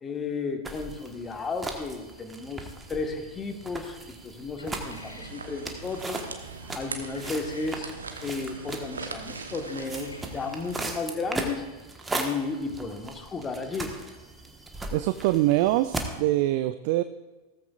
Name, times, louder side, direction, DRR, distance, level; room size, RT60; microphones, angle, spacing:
voice 1, 0.0-6.2 6.7-7.9 8.2-11.6 12.1-13.9, left 4 dB, 20° left, 5 dB, 1.5 m, -33 dB
sound 1, 0.6-16.2, right 2 dB, 10° right, 1.4 m, -38 dB
sound 2, 4.6-5.4 7.1-7.9 9.7-10.3, left 2 dB, 80° left, 1.1 m, -49 dB
sound 3, 4.6-11.0, right 4 dB, 75° right, 1.1 m, -41 dB
voice 2, 14.9-17.0, right 15 dB, 45° right, 12 dB, 0.4 m, -24 dB
17.0 x 14.0 x 2.5 m, 1.2 s
figure-of-eight pair, 90°, 0 cm